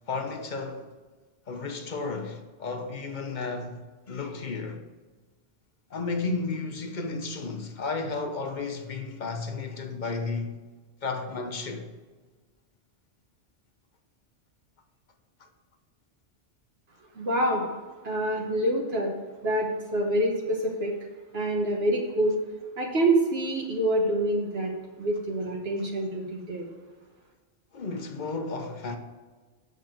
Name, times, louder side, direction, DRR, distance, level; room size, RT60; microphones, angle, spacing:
voice 1, 0.1-0.9 1.5-3.8 4.1-4.8 5.9-10.6 11.0-11.9 15.4-15.5 27.7-29.0, left 3 dB, 45° left, 0.9 m, -33 dB
voice 2, 17.1-17.6 18.0-19.1 19.4-21.0 21.3-22.4 22.8-24.7 25.0-26.7, right 1 dB, 60° right, 1.3 m, -26 dB
7.8 x 6.1 x 4.5 m
omnidirectional pair, 1.2 m